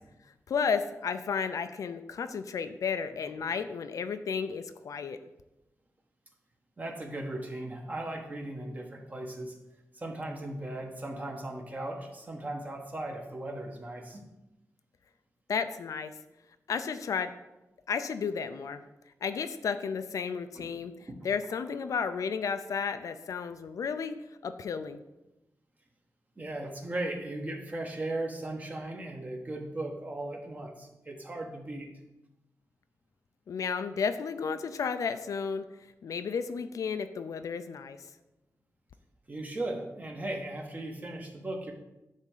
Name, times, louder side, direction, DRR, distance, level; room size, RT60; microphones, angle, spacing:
voice 1, 0.5-5.2 15.5-16.1 16.7-17.3 17.9-18.8 19.2-20.9 21.2-24.2 24.4-25.0 33.5-35.7 36.0-38.0, left 6 dB, 75° left, 9 dB, 0.6 m, -32 dB
voice 2, 6.8-9.6 9.9-14.3 20.5-20.7 21.1-21.2 26.4-31.9 39.3-41.7, right 1 dB, 30° right, 2 dB, 1.4 m, -37 dB
10.5 x 3.6 x 7.4 m, 0.96 s
wide cardioid pair, 150°, 6 cm